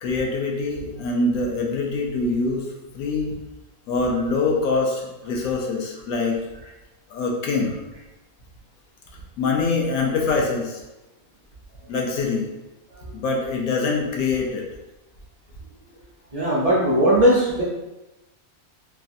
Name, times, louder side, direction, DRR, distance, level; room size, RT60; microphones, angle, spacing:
voice 1, 0.0-2.6 2.9-3.3 3.9-6.4 7.1-7.8 9.4-10.8 11.9-12.5 13.1-14.7, left 3 dB, 85° left, 0 dB, 1.1 m, -24 dB
voice 2, 16.3-17.6, right 1 dB, 70° right, -8 dB, 0.3 m, -18 dB
3.1 x 2.4 x 2.6 m, 1.0 s
omnidirectional pair, 1.5 m